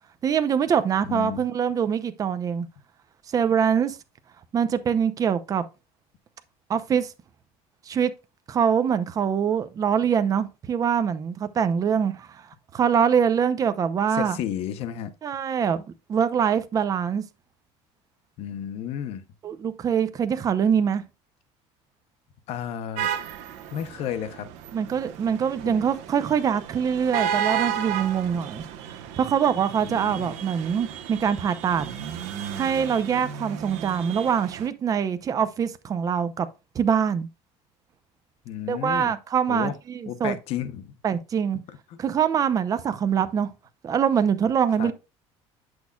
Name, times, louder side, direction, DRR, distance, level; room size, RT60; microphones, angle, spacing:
voice 1, 0.2-2.7 3.3-4.0 4.5-5.6 6.7-7.1 7.9-8.1 8.5-12.4 12.7-14.4 15.2-15.8 16.1-17.2 19.4-21.0 24.7-31.9 32.5-36.5 36.7-37.3 38.7-40.4 41.0-41.6 42.0-43.5 43.8-44.9, right 7 dB, 30° right, 0.6 m, -24 dB
voice 2, 1.1-1.4 14.1-15.1 18.4-19.2 22.5-23.1 23.7-24.5 25.6-25.8 29.8-30.3 38.4-39.1 39.5-39.8 40.1-40.9 41.7-42.0 44.8-44.9, left 9 dB, 60° left, 0.8 m, -32 dB
sound 1, 23.0-34.7, right 9 dB, 75° right, 1.1 m, -33 dB
8.5 x 6.2 x 2.3 m
cardioid pair, 135°, 12 cm